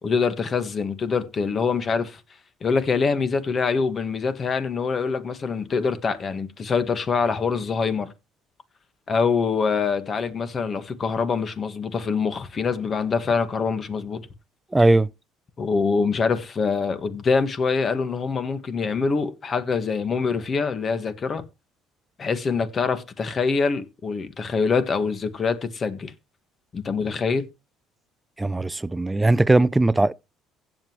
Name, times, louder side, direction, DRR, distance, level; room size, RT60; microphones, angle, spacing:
voice 1, 0.0-2.2 2.6-8.1 9.1-14.2 15.6-21.4 22.2-26.1 26.7-27.5, left 5 dB, 40° left, 1.5 m, -24 dB
voice 2, 14.7-15.1 28.4-30.1, right 2 dB, 15° right, 0.5 m, -19 dB
16.0 x 7.6 x 3.0 m
supercardioid pair, 90°, 0 cm